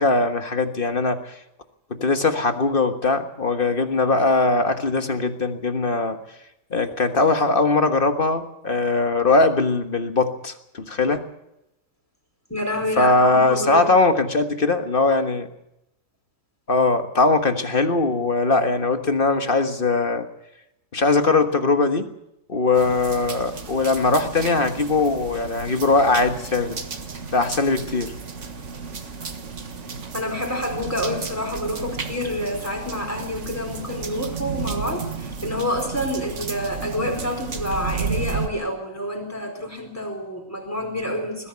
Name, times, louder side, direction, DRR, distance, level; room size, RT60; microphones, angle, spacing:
voice 1, 0.0-1.3 2.0-6.2 6.7-11.2 13.0-15.5 16.7-20.3 20.9-22.1 22.5-26.8 27.3-28.1, left 3 dB, 35° left, 7 dB, 1.6 m, -20 dB
voice 2, 12.5-13.8 30.1-41.5, left 1 dB, 10° left, 3 dB, 4.7 m, -28 dB
sound 1, 22.7-38.5, right 5 dB, 45° right, 1.8 m, -33 dB
21.0 x 15.0 x 8.5 m, 0.85 s
omnidirectional pair, 1.8 m